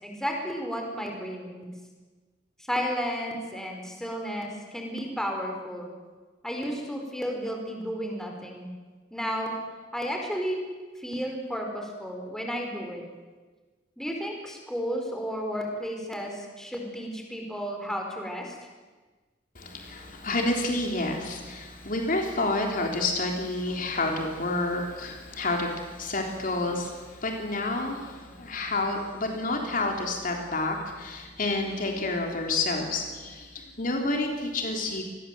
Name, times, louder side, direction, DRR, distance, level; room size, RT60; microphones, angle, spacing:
voice 1, 0.0-1.7 2.7-5.9 6.4-8.7 9.1-9.6 9.9-10.6 11.0-13.0 14.0-18.6, equal, 5° left, 1 dB, 4.4 m, -33 dB
voice 2, 19.6-35.0, left 2 dB, 50° left, 2 dB, 3.5 m, -29 dB
27.0 x 21.0 x 7.9 m, 1.3 s
head